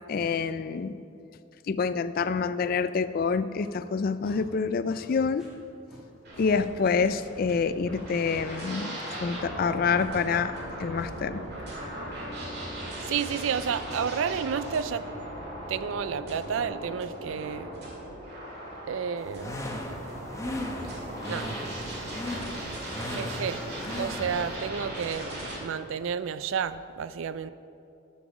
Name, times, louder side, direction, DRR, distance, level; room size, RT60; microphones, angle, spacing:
voice 1, 0.1-0.9 1.7-5.4 6.4-10.5 10.8-11.4, left 5 dB, 45° left, 13 dB, 0.3 m, -27 dB
sound 1, 3.6-3.8 4.2-4.4 4.8-5.0 5.3-5.5 5.9-6.0 6.3-6.5 6.8-6.9 7.3-7.5 8.2-8.4 9.1-9.3 9.9-10.1 10.9-11.1 11.6-11.8 12.3-12.5, equal, 5° right, 2.2 m, -53 dB
sound 2, 6.2-25.6, right 1 dB, 50° right, 2.2 m, -38 dB
voice 2, 13.0-15.1 15.7-17.7 18.9-19.6 21.3-21.6 23.0-23.6 24.0-27.5, right 7 dB, 75° right, 14 dB, 0.4 m, -31 dB
sound 3, 19.2-24.5, left 1 dB, 15° left, 0.8 m, -37 dB
8.3 x 7.0 x 6.2 m, 2.6 s
head